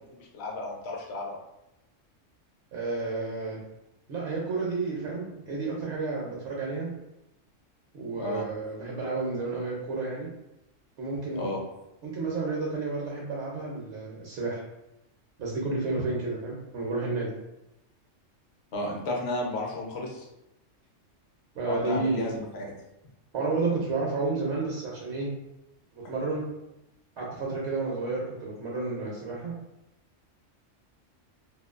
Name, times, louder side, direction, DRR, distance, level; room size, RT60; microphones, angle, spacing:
voice 1, 0.1-1.4 8.1-8.4 11.3-11.6 18.7-20.3 21.7-22.7, left 2 dB, 65° left, -1 dB, 0.8 m, -33 dB
voice 2, 2.7-3.6 4.1-6.9 7.9-10.3 11.0-11.5 12.0-14.6 15.4-17.3 21.5-22.3 23.3-25.3 25.9-26.5 27.2-29.5, right 3 dB, 70° right, -3 dB, 0.9 m, -31 dB
2.5 x 2.3 x 2.3 m, 0.90 s
omnidirectional pair, 1.3 m